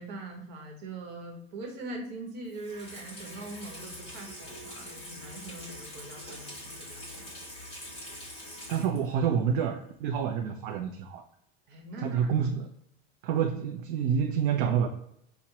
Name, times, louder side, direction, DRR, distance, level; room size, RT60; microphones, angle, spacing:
voice 1, 0.0-7.2 11.7-12.3, right 2 dB, 35° right, 1 dB, 1.0 m, -42 dB
Water tap faucet / Sink (filling or washing), 2.5-9.2 9.5-9.6, left 1 dB, 20° left, 1.4 m, -44 dB
voice 2, 8.7-11.2 12.0-12.7 13.2-14.9, right 7 dB, 60° right, 2 dB, 0.5 m, -28 dB
5.8 x 2.1 x 2.8 m, 0.74 s
supercardioid pair, 175°, 30 cm